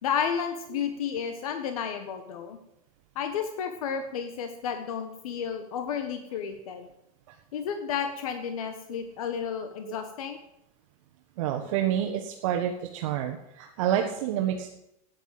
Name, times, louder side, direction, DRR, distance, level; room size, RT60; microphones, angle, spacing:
voice 1, 0.0-2.6 3.1-6.9 7.5-10.4, left 7 dB, 80° left, 7 dB, 1.4 m, -32 dB
voice 2, 11.4-14.7, right 10 dB, 60° right, 2 dB, 1.4 m, -28 dB
12.5 x 9.6 x 7.7 m, 0.84 s
supercardioid pair, 160°, 18 cm